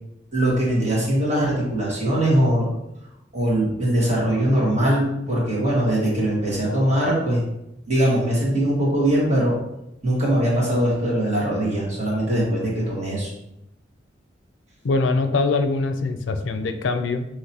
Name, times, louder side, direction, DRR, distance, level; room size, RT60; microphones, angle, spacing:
voice 1, 0.3-2.7 3.3-7.4 7.9-9.6 10.0-13.3, right 1 dB, 35° right, -5 dB, 1.7 m, -21 dB
voice 2, 14.8-17.3, left 3 dB, 80° left, 8 dB, 0.4 m, -23 dB
5.8 x 3.0 x 2.8 m, 0.85 s
head